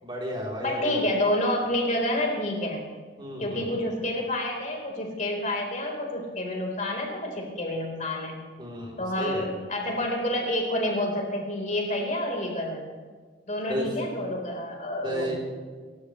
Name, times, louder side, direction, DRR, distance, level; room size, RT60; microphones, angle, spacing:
voice 1, 0.0-1.0 3.2-3.7 8.6-9.4 13.7-13.9 15.0-15.3, equal, 25° right, -3 dB, 3.5 m, -33 dB
voice 2, 0.6-2.8 3.4-8.4 9.0-12.8 13.5-15.3, left 1 dB, 40° left, 0 dB, 4.2 m, -28 dB
29.0 x 15.0 x 3.3 m, 1.5 s
head